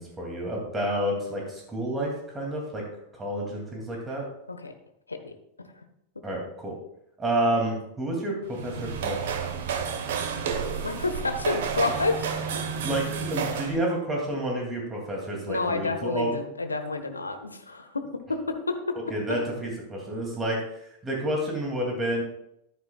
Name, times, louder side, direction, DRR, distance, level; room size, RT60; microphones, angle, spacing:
voice 1, 0.0-2.8 3.1-4.3 6.2-6.8 7.2-9.4 12.8-16.4 19.1-22.2, right 1 dB, 15° right, -1 dB, 2.7 m, -29 dB
sound 1, 8.5-13.8, right 6 dB, 55° right, 1.2 m, -31 dB
voice 2, 10.8-12.3 15.5-18.0 18.7-18.8, left 3 dB, 80° left, 7 dB, 1.1 m, -29 dB
13.5 x 10.5 x 2.4 m, 0.78 s
figure-of-eight pair, 90°, 0 cm